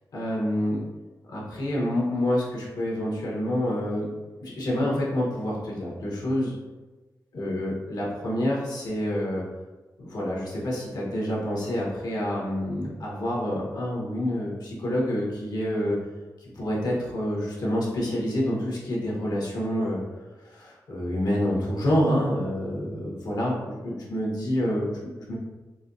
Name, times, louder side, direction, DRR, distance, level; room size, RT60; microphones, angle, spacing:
voice 1, 0.1-0.8 1.3-4.1 4.4-6.5 7.3-9.4 10.0-16.0 16.4-20.0 20.4-25.0 25.3-25.4, equal, 70° left, -4 dB, 1.0 m, -27 dB
4.1 x 2.2 x 2.6 m, 1.2 s
cardioid pair, 75°, 7 cm